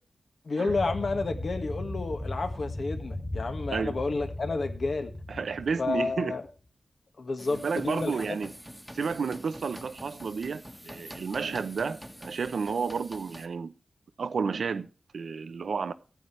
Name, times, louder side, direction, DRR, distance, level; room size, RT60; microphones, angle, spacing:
voice 1, 0.4-5.1 5.8-6.5 7.2-8.4, left 3 dB, 55° left, 1.7 m, -30 dB
sound 1, 0.7-6.5, left 1 dB, 20° left, 2.4 m, -37 dB
voice 2, 5.3-6.4 7.5-8.5 8.9-13.7 14.2-14.9 15.1-15.9, right 5 dB, 80° right, 0.8 m, -31 dB
sound 2, 7.4-13.5, equal, ahead, 1.5 m, -46 dB
15.5 x 9.3 x 3.2 m
wide cardioid pair, 120°, 0 cm